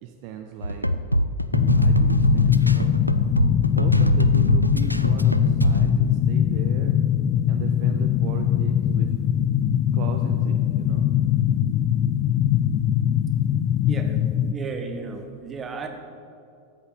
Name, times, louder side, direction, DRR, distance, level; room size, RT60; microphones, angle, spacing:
voice 1, 0.0-0.9 1.8-2.9 3.7-7.0 7.5-9.3 9.9-11.1, right 8 dB, 45° right, 5 dB, 0.6 m, -37 dB
sound 1, 0.6-5.9, equal, 90° right, 0.3 m, -22 dB
sound 2, 1.5-14.5, left 10 dB, 35° left, 0.3 m, -22 dB
voice 2, 14.5-15.9, right 4 dB, 20° right, 5 dB, 1.1 m, -33 dB
13.5 x 7.9 x 3.9 m, 2.5 s
figure-of-eight pair, 90°, 0 cm